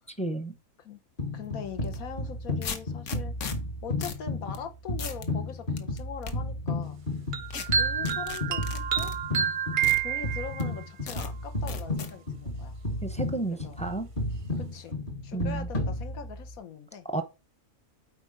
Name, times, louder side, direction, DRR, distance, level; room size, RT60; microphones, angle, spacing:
voice 1, 0.2-0.6 13.0-14.1 15.3-15.7 17.1-17.2, right 2 dB, 10° left, 0.4 m, -32 dB
sound 1, 1.2-16.6, left 2 dB, 40° left, 1.3 m, -33 dB
voice 2, 1.3-3.3 3.8-7.0 7.7-9.1 10.0-12.8 13.5-13.8 14.6-14.9 15.2-17.1, left 7 dB, 85° left, 1.4 m, -41 dB
sound 2, 1.8-2.0 2.6-3.6 4.0-4.2 4.5-4.6 5.0-5.3 5.8-6.3 7.5-7.7 8.1-9.2 9.8-10.0 10.6-10.7 11.1-11.3 11.7-12.1, left 6 dB, 65° left, 1.2 m, -37 dB
sound 3, 7.3-10.8, right 8 dB, 55° right, 0.6 m, -28 dB
8.1 x 4.6 x 3.8 m
omnidirectional pair, 1.4 m